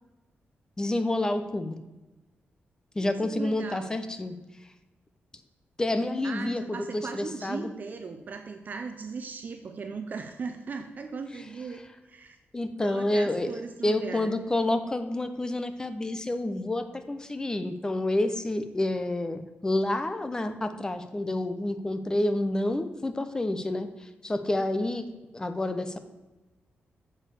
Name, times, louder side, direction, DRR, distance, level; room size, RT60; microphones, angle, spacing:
voice 1, 0.8-1.8 3.0-4.4 5.8-7.7 12.5-13.5 13.8-23.9 24.2-25.1 25.3-26.0, left 1 dB, 15° left, 9 dB, 0.7 m, -29 dB
voice 2, 3.0-4.0 6.2-11.8 12.1-12.4 12.8-14.3, right 4 dB, 45° right, 6 dB, 0.6 m, -38 dB
7.1 x 5.5 x 6.9 m, 1.1 s
wide cardioid pair, 145°, 4 cm